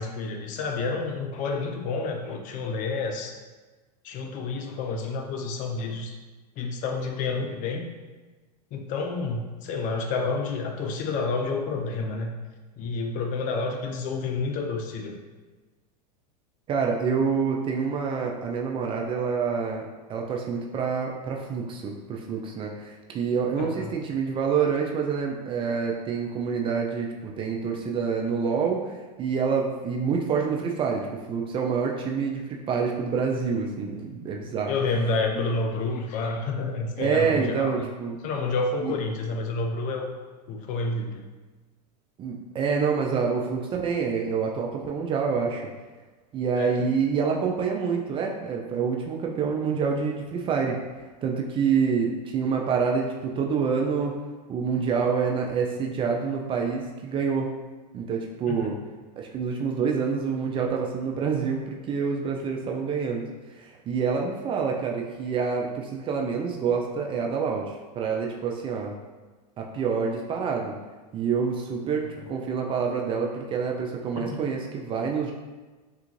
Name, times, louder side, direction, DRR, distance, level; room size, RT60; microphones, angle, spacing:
voice 1, 0.0-3.3 4.0-6.1 6.6-7.9 8.7-12.3 12.8-15.2 23.6-23.9 34.7-37.8 38.2-40.1 40.5-41.2 46.5-46.9 58.5-58.7 74.2-74.4, left 3 dB, 40° left, 3 dB, 0.5 m, -29 dB
voice 2, 16.7-34.7 35.3-35.5 37.0-38.2 38.8-38.9 42.2-45.6 46.3-50.8 51.2-54.2 54.5-57.5 57.9-58.7 59.2-63.2 63.5-69.0 69.6-70.7 71.1-75.3, right 6 dB, 25° right, 1 dB, 0.3 m, -27 dB
3.5 x 2.4 x 3.0 m, 1.3 s
hypercardioid pair, 105°, 21 cm